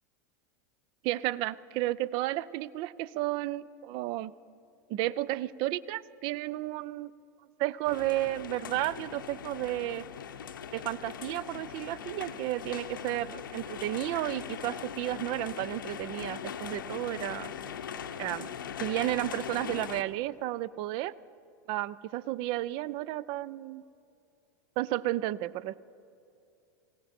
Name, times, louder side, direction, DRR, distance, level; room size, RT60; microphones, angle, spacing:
voice 1, 1.0-4.3 4.9-7.1 7.6-10.0 10.7-17.5 18.2-18.5 18.8-21.1 21.7-23.8 24.8-25.8, right 16 dB, 50° right, 21 dB, 0.4 m, -32 dB
sound 1, 7.8-20.0, left 8 dB, 80° left, 0.7 m, -40 dB
18.5 x 17.0 x 4.3 m, 2.6 s
hypercardioid pair, 95°, 11 cm